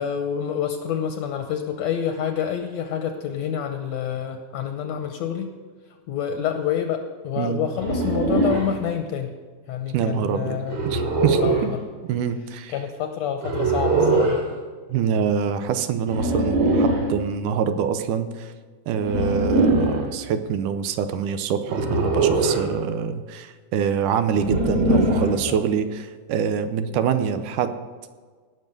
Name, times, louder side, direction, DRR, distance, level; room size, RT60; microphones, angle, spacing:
voice 1, 0.0-5.5 6.1-9.3 9.7-10.8 11.4-11.8 12.7-14.4 24.9-25.6, left 8 dB, 70° left, 6 dB, 1.8 m, -28 dB
sound 1, 7.8-8.7 10.7-11.7 13.4-14.4 16.1-17.1 19.0-20.0 21.7-22.7 24.4-25.4, right 2 dB, 55° right, 3.2 m, -21 dB
voice 2, 9.9-10.6 10.9-11.7 12.1-12.7 14.9-18.5 18.9-27.7, right 7 dB, 85° right, 10 dB, 2.3 m, -25 dB
18.0 x 6.2 x 6.6 m, 1.5 s
omnidirectional pair, 3.7 m